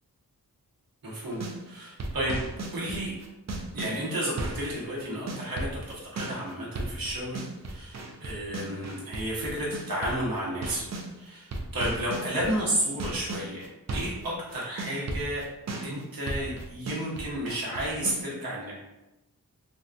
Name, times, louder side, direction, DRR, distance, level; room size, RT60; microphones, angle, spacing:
voice 1, 1.0-2.4 2.7-3.1 3.7-10.9 11.2-13.7 13.9-15.4 15.8-18.8, right 1 dB, 75° right, -5 dB, 1.0 m, -32 dB
sound 1, 1.3-1.6 2.0-11.1 11.5-14.3 14.5-18.2, right 2 dB, 50° right, 0.5 m, -35 dB
3.7 x 2.2 x 2.5 m, 0.99 s
wide cardioid pair, 115°, 36 cm